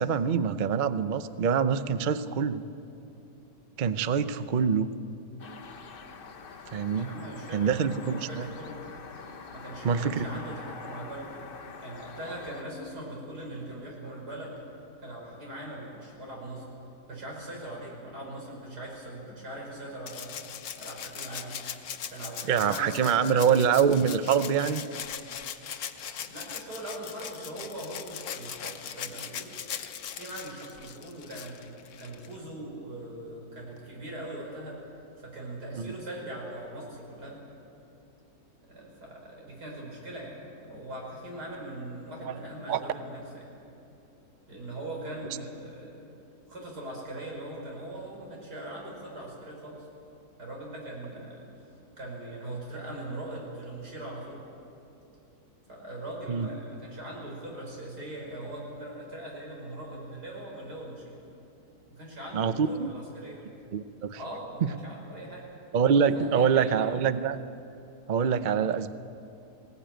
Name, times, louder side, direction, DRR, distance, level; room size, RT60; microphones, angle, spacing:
voice 1, 0.0-2.6 3.8-4.9 6.7-7.1 7.5-8.5 9.8-10.3 22.5-24.8 35.8-35.9 42.3-42.4 42.7-42.8 56.3-56.5 62.3-62.9 63.7-64.2 65.7-67.4 68.1-68.9, right 7 dB, 60° right, 12 dB, 0.5 m, -25 dB
sound 1, 5.4-12.6, left 5 dB, 40° left, 0.9 m, -45 dB
voice 2, 6.9-8.8 9.5-11.3 11.8-14.6 15.0-16.7 17.1-20.5 20.8-21.6 22.0-23.7 26.2-29.6 30.2-31.6 32.0-34.8 35.2-37.4 38.7-43.5 44.5-46.1 46.5-49.9 50.4-51.5 52.0-54.4 55.7-61.2 61.9-63.5 64.1-65.5 66.1-67.0, right 1 dB, 80° right, -2 dB, 5.8 m, -40 dB
Rattle (instrument), 20.1-32.4 33.8-33.9, left 8 dB, 70° left, 1.3 m, -40 dB
20.0 x 17.0 x 9.0 m, 2.6 s
omnidirectional pair, 1.7 m